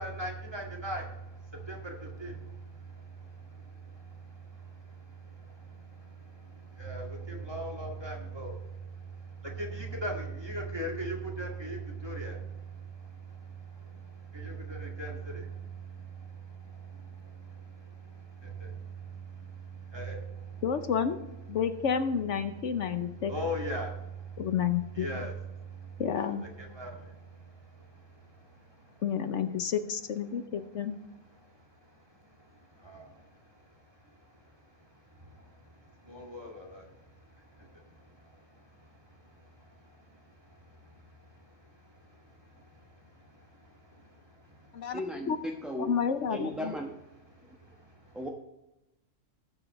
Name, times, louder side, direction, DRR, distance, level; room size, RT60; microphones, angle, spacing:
voice 1, 0.0-20.6 23.3-24.4 25.0-26.3 26.6-28.9 32.5-33.4 35.1-39.4 39.7-41.6 41.9-44.1 44.4-44.8 47.4-48.1, right 2 dB, 20° right, -1 dB, 2.2 m, -41 dB
voice 2, 20.6-21.2 21.5-23.3 24.4-25.3 26.0-26.4 29.0-31.0 44.7-45.0 45.3-45.4 45.8-46.7, left 7 dB, 70° left, 9 dB, 1.1 m, -30 dB
voice 3, 44.9-46.0 46.3-47.0 47.4-47.6 48.1-48.3, left 1 dB, ahead, 0 dB, 0.9 m, -36 dB
18.5 x 7.5 x 3.2 m, 0.93 s
omnidirectional pair, 1.3 m